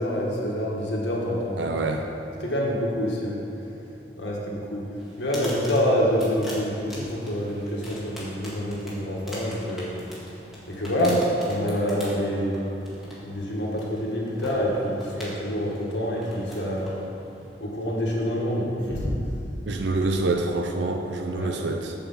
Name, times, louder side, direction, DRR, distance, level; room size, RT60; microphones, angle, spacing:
voice 1, 0.0-1.7 2.4-3.4 4.2-4.8 5.2-10.0 10.7-12.6 13.2-16.9 17.6-19.2 21.3-21.6, equal, 85° left, -3 dB, 1.6 m, -26 dB
voice 2, 1.6-2.1 11.0-11.2 19.7-21.9, right 3 dB, 80° right, 4 dB, 0.5 m, -26 dB
sound 1, 5.0-17.6, equal, ahead, 1.9 m, -42 dB
7.6 x 5.0 x 7.2 m, 2.8 s
head